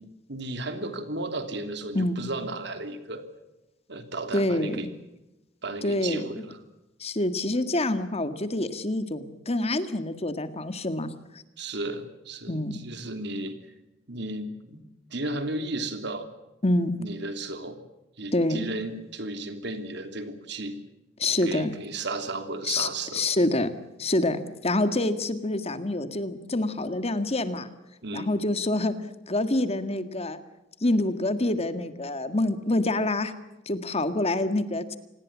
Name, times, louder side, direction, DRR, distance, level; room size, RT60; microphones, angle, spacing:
voice 1, 0.3-3.2 3.9-4.9 5.6-6.6 11.6-13.6 14.1-14.8 15.1-16.3 17.0-17.8 18.2-20.8 21.4-23.2 28.0-28.3, right 2 dB, 65° right, 8 dB, 3.2 m, -34 dB
voice 2, 4.3-4.9 5.8-6.4 7.0-11.1 12.5-12.8 16.6-16.9 18.3-18.6 21.2-21.7 22.6-23.7 24.0-27.7 28.1-29.0 29.3-30.4 30.8-33.3 33.7-35.0, left 2 dB, 35° left, 10 dB, 1.8 m, -26 dB
27.5 x 20.0 x 7.4 m, 0.97 s
head